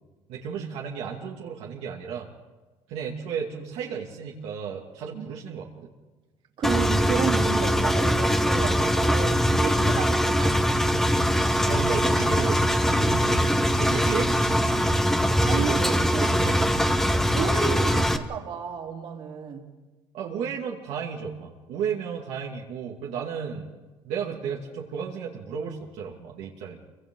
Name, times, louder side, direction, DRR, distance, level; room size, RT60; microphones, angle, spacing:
voice 1, 0.3-2.3 2.9-5.9 11.7-15.0 15.5-17.0 20.1-23.7 24.0-26.8, right 7 dB, 80° right, -2 dB, 2.4 m, -34 dB
Engine, 6.6-18.2, equal, 5° left, 1.2 m, -22 dB
voice 2, 6.6-10.6 15.4-16.2 17.3-19.7, right 6 dB, 55° right, 1 dB, 3.2 m, -32 dB
29.0 x 24.5 x 3.9 m, 1.2 s
cardioid pair, 135°, 10 cm